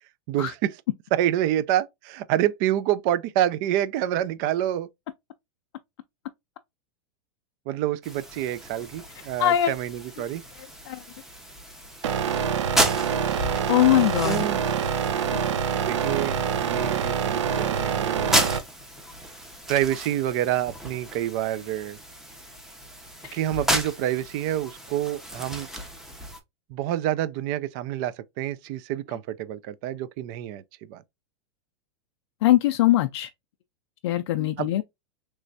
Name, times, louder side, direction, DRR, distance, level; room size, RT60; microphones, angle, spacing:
voice 1, 0.3-0.7 1.1-4.9 7.7-10.4 14.2-14.6 15.8-18.4 19.7-22.0 23.3-25.7 26.7-31.0 34.6-34.8, right 12 dB, 40° right, 0.4 m, -27 dB
sound 1, 8.0-26.4, equal, 5° right, 0.6 m, -33 dB
voice 2, 9.4-9.7 10.9-11.0 13.7-14.4 15.3-15.5 23.2-23.4 32.4-33.3 34.0-34.8, left 13 dB, 65° left, 0.4 m, -21 dB
sound 2, 12.0-18.6, right 7 dB, 85° right, 0.7 m, -26 dB
3.2 x 3.1 x 2.6 m
supercardioid pair, 150°, 15 cm